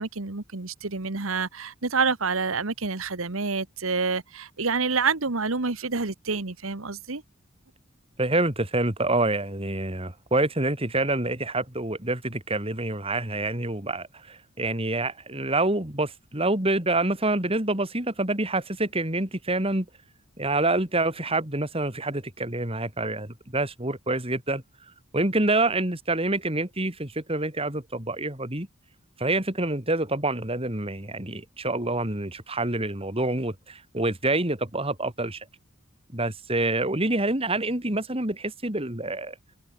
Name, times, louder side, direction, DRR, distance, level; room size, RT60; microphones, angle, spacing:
voice 1, 0.0-7.2, right 4 dB, 75° right, 1.5 m, -28 dB
voice 2, 8.2-19.9 20.4-24.6 25.1-28.7 29.2-35.5 36.1-39.4, right 2 dB, 25° right, 3.5 m, -27 dB
head